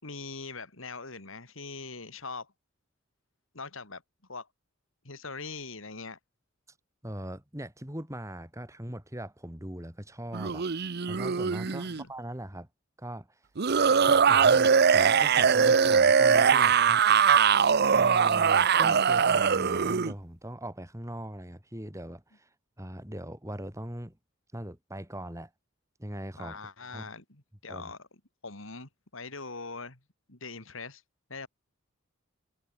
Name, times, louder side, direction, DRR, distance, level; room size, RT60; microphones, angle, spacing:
voice 1, 0.0-2.5 3.5-4.0 4.3-4.5 5.0-6.2 11.6-12.1 26.4-28.1 28.4-30.0 30.3-31.0 31.3-31.5, left 4 dB, 75° left, 3.7 m, -42 dB
voice 2, 7.0-10.7 11.1-12.7 13.0-13.3 14.1-17.0 17.9-22.5 22.8-24.2 24.5-25.5 26.0-26.6 26.9-27.1 27.7-27.9, right 1 dB, 15° right, 5.4 m, -40 dB
sound 1, 10.3-12.0 13.6-20.1, right 6 dB, 50° right, 0.7 m, -22 dB
head